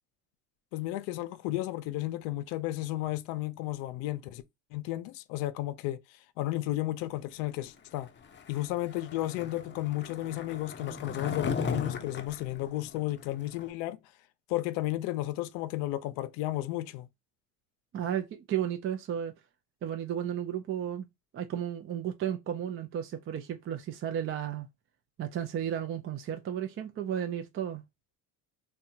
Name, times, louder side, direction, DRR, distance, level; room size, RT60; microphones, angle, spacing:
voice 1, 0.7-4.4 4.7-6.0 6.4-8.1 8.5-14.0 14.5-17.1, left 16 dB, 80° left, 0.5 m, -33 dB
Skateboard, 8.2-13.7, left 5 dB, 25° left, 0.6 m, -37 dB
voice 2, 17.9-19.3 19.8-21.1 21.3-24.7 25.2-27.8, right 9 dB, 30° right, 0.4 m, -33 dB
2.7 x 2.2 x 2.6 m
supercardioid pair, 85°, 43 cm